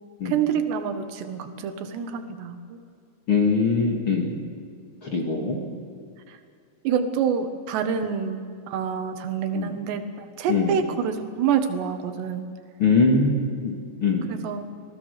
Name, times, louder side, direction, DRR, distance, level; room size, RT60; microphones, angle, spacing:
voice 1, 0.3-2.8 5.4-5.8 6.9-8.4 8.7-12.5 14.3-14.7, right 7 dB, 90° right, 7 dB, 3.7 m, -27 dB
voice 2, 3.3-4.3 5.1-5.6 9.5-9.7 10.5-10.7 12.8-13.7 14.0-14.3, left 4 dB, 40° left, 0 dB, 2.4 m, -22 dB
27.0 x 18.5 x 6.6 m, 2.2 s
omnidirectional pair, 4.8 m